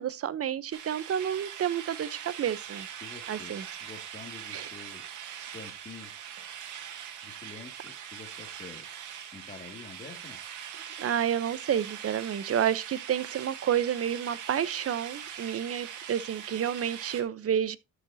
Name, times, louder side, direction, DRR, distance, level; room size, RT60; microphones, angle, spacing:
voice 1, 0.0-2.9 3.3-3.6 4.5-4.7 11.0-17.8, right 9 dB, 50° right, 0.9 m, -30 dB
sound 1, 0.7-17.2, right 9 dB, 80° right, 2.0 m, -42 dB
voice 2, 3.0-3.5 3.8-5.0 5.5-6.1 7.2-10.4, left 4 dB, 30° left, 2.4 m, -47 dB
13.0 x 6.4 x 2.8 m
cardioid pair, 90°, 30 cm